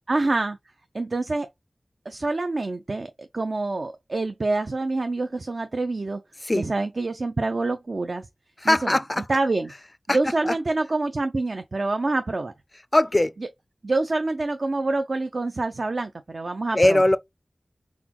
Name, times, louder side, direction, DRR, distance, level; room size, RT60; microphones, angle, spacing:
voice 1, 0.1-0.6 0.9-1.5 2.1-6.2 6.5-8.3 8.6-9.0 9.3-9.7 10.1-12.5 13.8-17.0, right 2 dB, 60° right, 0.4 m, -26 dB
voice 2, 8.6-9.2 10.1-10.2 10.5-10.6 12.9-13.3 16.7-17.2, left 1 dB, 30° left, 0.4 m, -20 dB
4.1 x 3.7 x 2.9 m
wide cardioid pair, 70°, 0 cm